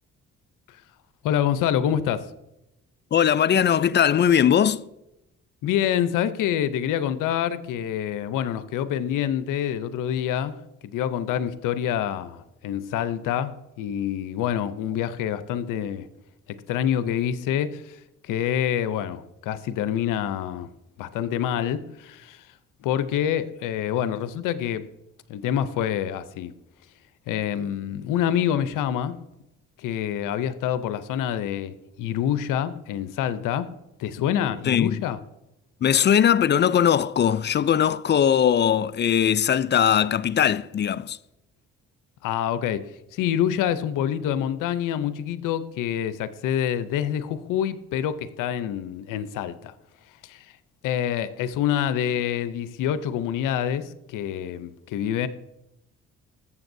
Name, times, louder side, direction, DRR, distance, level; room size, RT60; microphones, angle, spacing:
voice 1, 1.2-2.3 5.6-10.6 10.8-16.1 16.7-20.7 21.0-22.4 22.8-24.8 25.3-26.5 27.3-29.1 29.8-33.7 34.0-35.2 42.2-49.7 50.2-50.5 50.8-55.3, left 10 dB, 85° left, 0.6 m, -26 dB
voice 2, 3.1-4.8 34.7-35.0 35.8-41.2, left 9 dB, 35° left, 0.4 m, -20 dB
14.0 x 7.4 x 2.7 m
cardioid pair, 70°, 31 cm